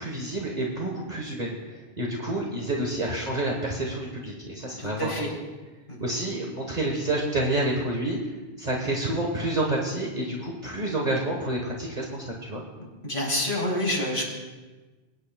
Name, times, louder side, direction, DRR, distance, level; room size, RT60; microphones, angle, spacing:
voice 1, 0.0-5.1 6.0-8.2 8.6-12.6, right 1 dB, 45° right, -1 dB, 1.4 m, -29 dB
voice 2, 4.8-5.3 5.9-6.0 13.0-14.2, left 1 dB, 55° left, -3 dB, 3.4 m, -27 dB
22.5 x 9.7 x 2.3 m, 1.2 s
omnidirectional pair, 1.1 m